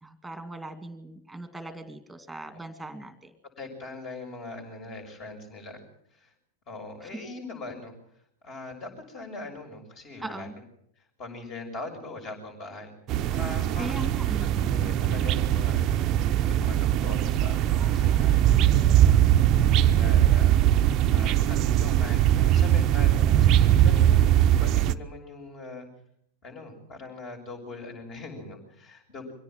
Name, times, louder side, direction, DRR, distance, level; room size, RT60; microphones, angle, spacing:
voice 1, 0.0-3.3 10.2-10.5 13.8-14.6, right 2 dB, 5° right, 10 dB, 2.3 m, -39 dB
voice 2, 3.6-5.8 6.1-6.3 6.7-7.9 8.4-10.5 11.0-12.9 13.3-19.4 19.7-20.6 21.1-25.9 26.4-29.3, left 2 dB, 35° left, 4 dB, 6.6 m, -41 dB
sound 1, 13.1-24.9, right 11 dB, 35° right, 0.8 m, -21 dB
23.5 x 17.0 x 7.6 m, 0.70 s
figure-of-eight pair, 90°, 0 cm